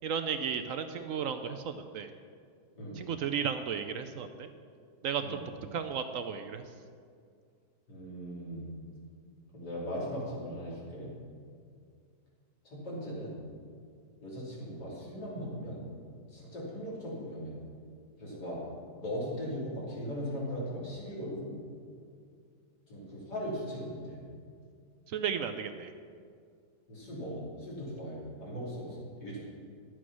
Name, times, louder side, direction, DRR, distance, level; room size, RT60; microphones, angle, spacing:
voice 1, 0.0-2.1 2.9-4.5 5.0-5.4 5.7-6.6 25.1-25.9, right 7 dB, 70° right, 9 dB, 0.8 m, -34 dB
voice 2, 7.9-8.6 9.5-11.1 12.6-13.4 14.2-15.8 16.3-17.5 18.2-18.6 19.0-21.6 22.9-24.2 26.9-28.9 29.2-29.4, equal, 75° left, -6 dB, 3.8 m, -38 dB
11.5 x 7.7 x 6.2 m, 2.2 s
omnidirectional pair, 1.8 m